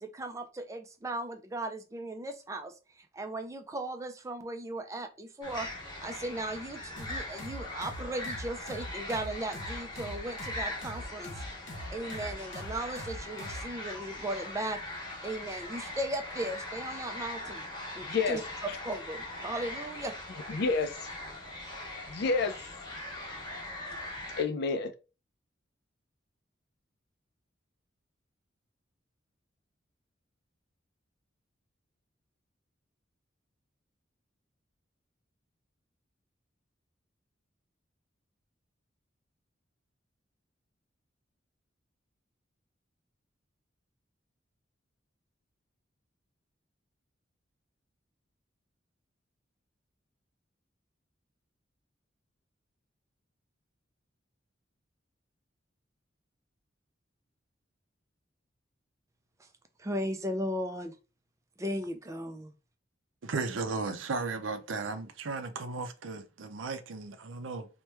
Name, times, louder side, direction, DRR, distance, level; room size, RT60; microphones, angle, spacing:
voice 1, 0.0-5.7 6.0-11.4 11.9-17.6 17.9-20.2 59.4-59.5 59.8-61.0 61.6-62.5, right 1 dB, 15° right, 0.3 m, -37 dB
sound 1, 5.4-24.4, left 1 dB, 20° left, 0.9 m, -41 dB
sound 2, 7.0-13.7, equal, 70° left, 0.8 m, -42 dB
voice 2, 18.0-18.4 20.5-21.1 22.1-22.6 24.4-24.9, left 4 dB, 55° left, 0.4 m, -29 dB
voice 3, 63.2-67.7, right 4 dB, 85° right, 0.5 m, -35 dB
2.9 x 2.1 x 3.3 m
head